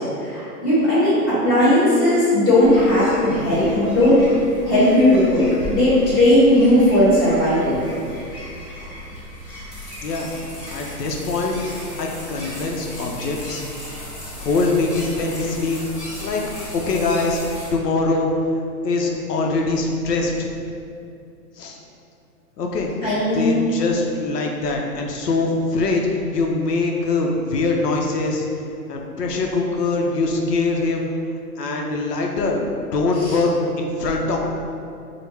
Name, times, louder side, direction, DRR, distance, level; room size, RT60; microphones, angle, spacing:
voice 1, 0.0-4.2 4.6-7.8 23.0-23.6 33.2-33.4, left 1 dB, 5° left, -20 dB, 0.8 m, -17 dB
sound 1, 2.6-17.7, left 1 dB, 35° left, 1.2 m, -35 dB
voice 2, 10.7-11.5 12.0-13.6 14.4-15.8 16.2-16.4 16.7-17.4 17.7-18.3 18.8-20.5 21.6-21.8 22.6-22.9 23.3-28.5 28.9-31.1 31.6-32.7 32.9-34.4, left 3 dB, 75° left, 0 dB, 0.6 m, -23 dB
4.7 x 2.1 x 3.3 m, 2.5 s
hypercardioid pair, 175°, 49 cm